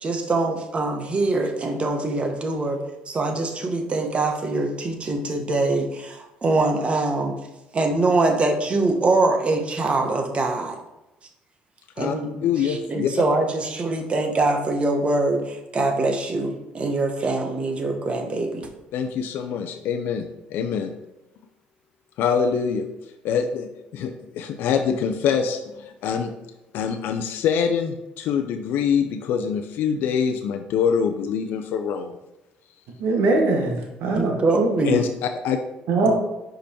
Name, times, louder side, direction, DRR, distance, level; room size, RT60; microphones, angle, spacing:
voice 1, 0.0-2.8 3.1-7.4 7.7-10.8 12.0-18.7 34.1-35.0, right 2 dB, 35° right, 5 dB, 1.1 m, -23 dB
voice 2, 12.4-13.1 18.9-20.2 20.5-20.9 22.2-22.8 23.2-26.3 26.7-32.2 34.8-35.6 36.0-36.1, left 7 dB, 70° left, 5 dB, 0.5 m, -24 dB
voice 3, 33.0-34.3 35.9-36.1, right 3 dB, 75° right, 1 dB, 1.3 m, -21 dB
5.2 x 5.0 x 4.4 m, 0.95 s
cardioid pair, 90°, 4 cm